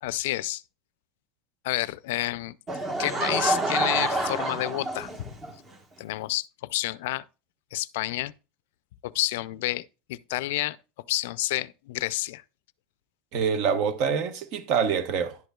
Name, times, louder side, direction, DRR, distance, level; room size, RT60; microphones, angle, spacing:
voice 1, 0.0-0.6 1.6-2.6 3.0-5.3 6.0-7.3 7.7-8.3 9.0-10.8 11.1-12.4, left 17 dB, 80° left, 0.4 m, -29 dB
Laughter / Crowd, 2.7-5.5, right 2 dB, 25° right, 1.3 m, -27 dB
voice 2, 13.3-15.4, right 6 dB, 50° right, 1.1 m, -25 dB
10.5 x 7.8 x 2.3 m
supercardioid pair, 150°, 0 cm